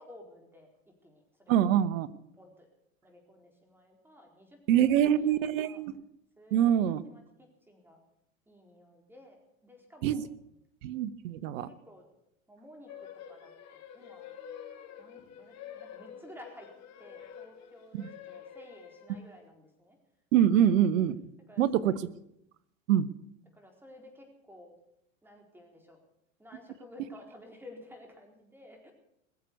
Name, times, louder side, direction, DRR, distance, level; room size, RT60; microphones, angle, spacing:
voice 1, 0.0-1.6 2.4-2.7 3.0-4.6 5.0-5.8 6.4-6.7 7.1-8.0 8.5-10.3 11.6-12.1 12.5-14.3 15.0-16.7 17.0-20.0 21.5-22.0 23.5-24.8 25.2-26.0 26.4-28.9, left 1 dB, 5° right, 2 dB, 4.2 m, -53 dB
voice 2, 1.5-2.1 4.7-6.0 6.5-7.0 10.0-10.2 10.8-11.7 17.9-18.1 20.3-21.3 21.6-21.9 22.9-23.1, right 10 dB, 75° right, 17 dB, 1.1 m, -25 dB
sound 1, 12.9-19.4, left 9 dB, 40° left, 2.9 m, -48 dB
20.5 x 7.7 x 8.2 m, 0.78 s
hypercardioid pair, 110°, 40 cm